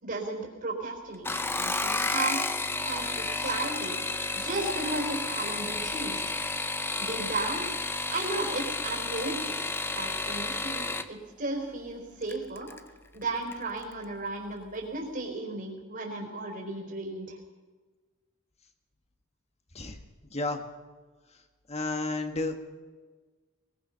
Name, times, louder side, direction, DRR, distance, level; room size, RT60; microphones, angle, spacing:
voice 1, 0.0-2.4 2.8-4.0 4.3-6.2 7.0-9.5 9.9-12.7 13.1-17.4, right 2 dB, 45° right, -1 dB, 4.1 m, -35 dB
sound 1, 1.1-11.1 12.3-12.8 13.2-13.6 13.9-14.0, left 3 dB, 10° left, 0.7 m, -31 dB
voice 2, 20.3-20.6 21.7-22.6, left 2 dB, 30° left, 6 dB, 1.7 m, -31 dB
21.0 x 21.0 x 5.8 m, 1.4 s
head